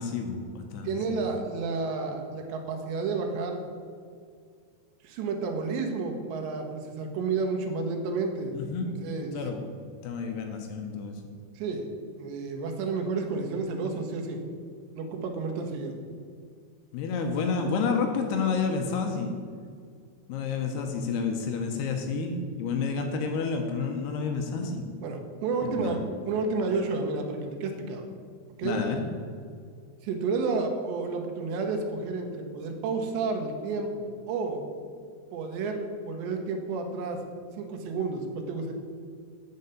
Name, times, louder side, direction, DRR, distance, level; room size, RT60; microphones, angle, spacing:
voice 1, 0.0-1.2 8.5-8.9 9.3-9.6 10.0-11.1 16.9-19.3 20.3-24.9 25.6-25.9 28.6-29.0, left 5 dB, 80° left, 4 dB, 2.6 m, -30 dB
voice 2, 0.8-3.6 5.0-8.5 9.0-9.4 11.6-11.9 12.2-14.4 14.9-16.0 25.0-28.0 28.6-28.8 30.0-34.6 35.3-37.2 37.6-38.7, right 4 dB, 80° right, 3 dB, 3.2 m, -31 dB
8.0 x 6.6 x 7.1 m, 2.1 s
omnidirectional pair, 5.1 m